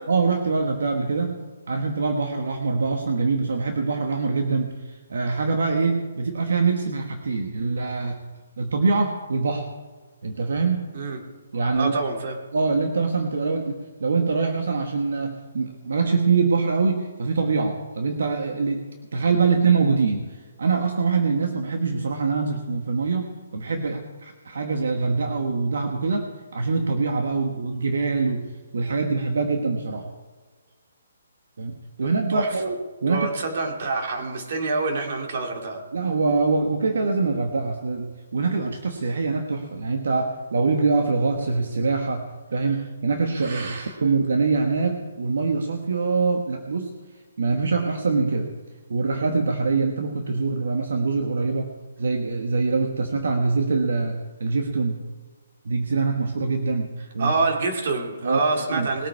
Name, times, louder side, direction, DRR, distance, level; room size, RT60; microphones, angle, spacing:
voice 1, 0.1-1.4 1.7-8.2 8.6-9.7 10.2-10.9 11.5-11.9 12.5-28.5 28.7-30.1 31.6-33.3 35.9-42.2 42.5-46.9 47.4-48.5 48.9-51.7 52.0-55.0 55.6-56.9 57.1-57.3 58.2-58.4 58.7-58.9, right 4 dB, 70° right, 4 dB, 1.5 m, -24 dB
voice 2, 11.8-12.4 32.3-32.5 33.1-35.8 43.3-43.9 57.2-59.1, right 3 dB, 45° right, 3 dB, 2.6 m, -26 dB
20.5 x 8.7 x 4.8 m, 1.4 s
hypercardioid pair, 165°, 0 cm